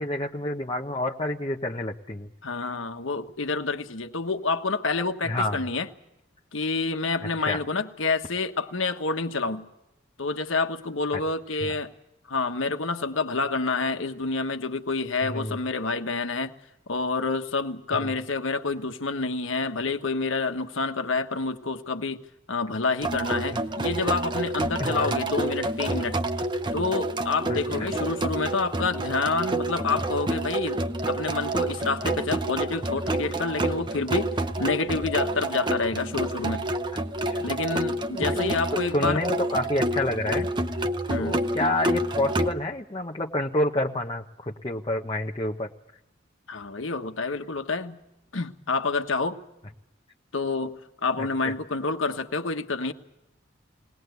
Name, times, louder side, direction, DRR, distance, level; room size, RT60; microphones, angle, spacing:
voice 1, 0.0-2.3 5.3-5.6 7.5-7.6 11.1-11.2 11.6-11.7 15.3-15.6 18.0-18.1 23.5-23.6 24.8-25.2 27.5-27.9 37.2-37.4 38.1-38.5 38.9-40.5 41.2-45.7 51.2-51.5, left 1 dB, 25° left, 0.9 m, -29 dB
voice 2, 2.4-5.9 6.5-9.7 10.2-11.9 12.3-16.5 16.9-22.2 22.5-26.2 26.7-30.8 31.1-36.7 37.4-39.2 41.1-41.4 46.5-48.0 48.3-49.4 50.3-52.9, left 3 dB, 90° left, 1.4 m, -28 dB
sound 1, 23.0-42.5, right 1 dB, 25° right, 0.8 m, -28 dB
21.0 x 19.5 x 8.1 m
head